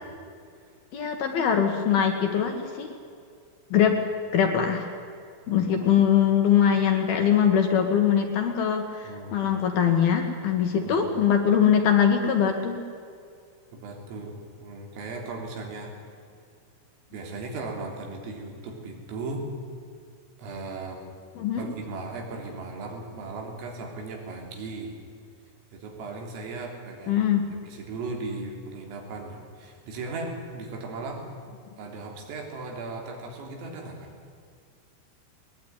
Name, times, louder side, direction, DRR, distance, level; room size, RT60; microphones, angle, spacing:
voice 1, 0.9-2.9 3.7-4.0 4.3-4.9 5.5-12.8 21.4-21.6 27.1-27.4, left 8 dB, 60° left, 4 dB, 2.9 m, -22 dB
voice 2, 5.5-5.9 9.0-9.3 10.7-11.0 13.7-15.9 17.1-19.5 20.4-21.1 21.6-25.0 25.7-27.2 27.5-31.3 31.8-34.1, right 3 dB, 85° right, 1 dB, 6.1 m, -37 dB
21.0 x 20.0 x 9.7 m, 2.3 s
omnidirectional pair, 5.8 m